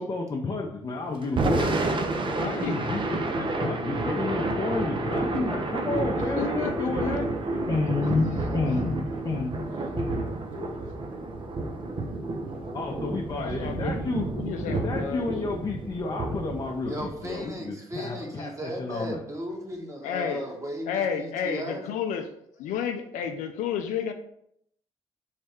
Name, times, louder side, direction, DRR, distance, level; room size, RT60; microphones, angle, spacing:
voice 1, 0.0-1.7 2.2-7.3 7.7-10.4 10.7-10.8 12.7-14.2 14.7-19.2, left 3 dB, 35° left, -1 dB, 0.6 m, -31 dB
Thunder / Rain, 1.2-17.5, right 2 dB, 40° right, 0.5 m, -30 dB
voice 2, 6.4-7.1 13.3-14.0 14.3-15.6 20.0-20.4 20.9-22.3 22.6-24.1, left 7 dB, 80° left, 6 dB, 0.4 m, -31 dB
voice 3, 16.9-21.8, equal, 25° right, 0 dB, 1.1 m, -36 dB
3.2 x 2.2 x 4.2 m, 0.71 s
supercardioid pair, 60°, 13 cm